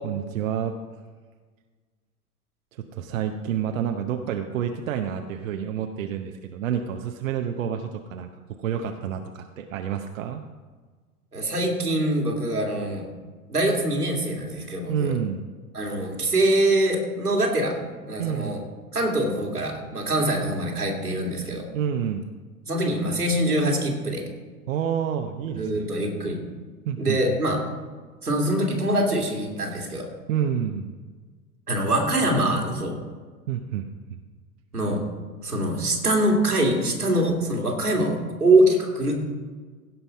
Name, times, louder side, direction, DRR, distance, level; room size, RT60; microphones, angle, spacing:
voice 1, 0.0-0.7 2.9-8.3 8.6-10.4 14.9-15.5 18.2-18.7 21.7-22.3 24.7-25.9 26.9-27.4 30.3-30.9 33.5-34.2, right 8 dB, 60° right, 5 dB, 0.8 m, -29 dB
voice 2, 11.3-13.1 13.5-15.1 15.7-17.8 18.1-18.6 18.9-21.6 22.7-24.2 25.5-26.4 27.0-27.6 28.2-30.1 31.7-33.0 34.7-35.0 35.4-39.2, right 1 dB, 85° right, 0 dB, 2.4 m, -24 dB
16.5 x 5.6 x 5.3 m, 1.4 s
figure-of-eight pair, 95°, 45 cm